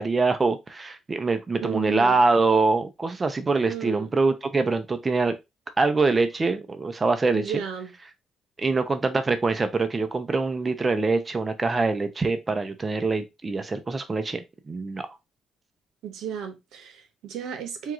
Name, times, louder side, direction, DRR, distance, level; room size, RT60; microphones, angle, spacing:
voice 1, 0.0-5.3 5.8-7.5 8.6-14.4 14.7-15.0, right 3 dB, 30° right, 0.6 m, -24 dB
voice 2, 1.6-2.2 3.7-4.1 7.3-7.9 16.0-17.9, right 8 dB, 85° right, 0.9 m, -33 dB
4.6 x 2.4 x 3.6 m
cardioid pair, 90°, 0 cm